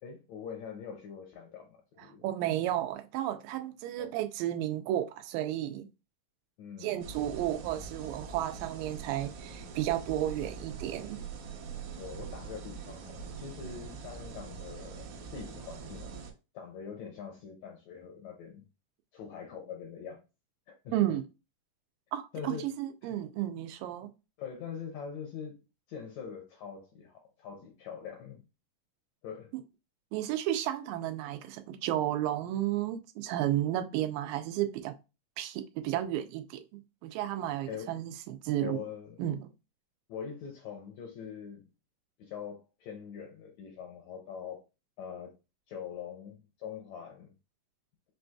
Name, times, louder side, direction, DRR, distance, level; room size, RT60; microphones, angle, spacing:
voice 1, 0.0-2.3 4.0-4.1 6.6-7.0 12.0-16.3 16.5-18.6 19.1-20.2 20.7-21.0 22.3-22.7 24.4-28.4 29.2-29.5 37.6-38.0 38.6-39.2 40.1-41.7 42.2-44.6 45.0-45.3 45.7-47.3, left 7 dB, 85° left, 1.6 m, -43 dB
voice 2, 2.2-5.9 6.8-11.2 20.9-21.2 22.1-24.1 30.1-35.0 35.4-38.8 39.2-39.4, right 12 dB, 90° right, 2.2 m, -33 dB
sound 1, 7.0-16.3, right 6 dB, 70° right, 2.0 m, -43 dB
5.8 x 2.6 x 2.3 m
omnidirectional pair, 3.9 m